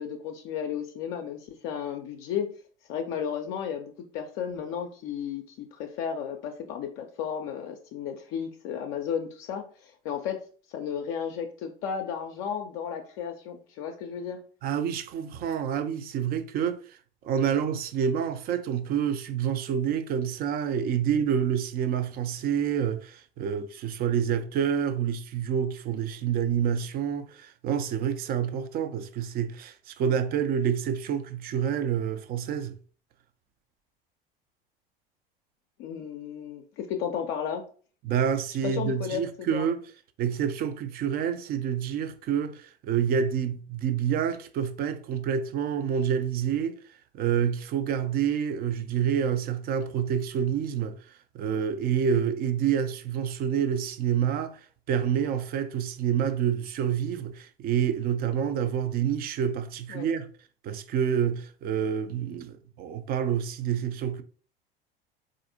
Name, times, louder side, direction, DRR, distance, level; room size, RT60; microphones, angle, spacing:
voice 1, 0.0-2.5 2.9-10.4 10.7-14.4 35.8-37.6 38.6-39.7 59.9-60.1, left 8 dB, 45° left, 0.5 m, -33 dB
voice 2, 14.6-17.0 17.2-32.8 38.0-39.8 40.2-46.8 47.1-60.3 60.6-64.2, right 8 dB, 30° right, 0.4 m, -28 dB
4.0 x 2.5 x 2.6 m
figure-of-eight pair, 75°, 29 cm